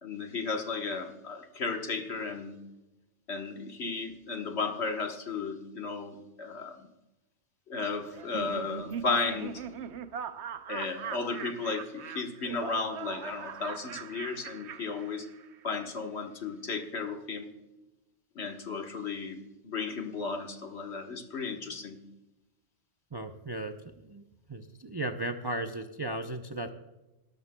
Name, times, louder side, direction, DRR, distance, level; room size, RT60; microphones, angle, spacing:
voice 1, 0.0-2.6 3.3-6.8 7.7-9.6 10.7-15.3 15.6-17.5 18.3-22.0, left 4 dB, 60° left, 4 dB, 1.5 m, -34 dB
Laughter, 8.1-15.6, right 8 dB, 65° right, 1.0 m, -41 dB
voice 2, 23.1-26.7, right 1 dB, 30° right, 5 dB, 0.4 m, -36 dB
20.0 x 12.0 x 2.2 m, 1.0 s
omnidirectional pair, 1.3 m